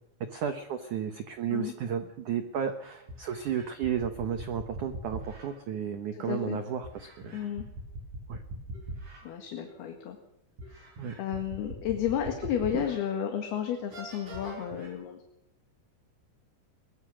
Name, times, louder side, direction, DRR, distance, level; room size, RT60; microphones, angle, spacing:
voice 1, 0.3-7.4 8.3-8.4 11.0-11.2 12.7-12.9, right 8 dB, 80° right, 8 dB, 1.7 m, -33 dB
sound 1, 2.4-2.5 3.1-5.5 6.8-9.2 9.7-9.8 10.6-13.0 13.4-13.5 13.9-14.9, right 1 dB, 40° right, 8.9 m, -41 dB
voice 2, 6.1-6.6 7.3-7.7 9.2-10.2 10.7-10.8 11.2-15.2, left 9 dB, 60° left, 4 dB, 3.5 m, -32 dB
22.0 x 21.0 x 6.4 m, 0.81 s
omnidirectional pair, 5.7 m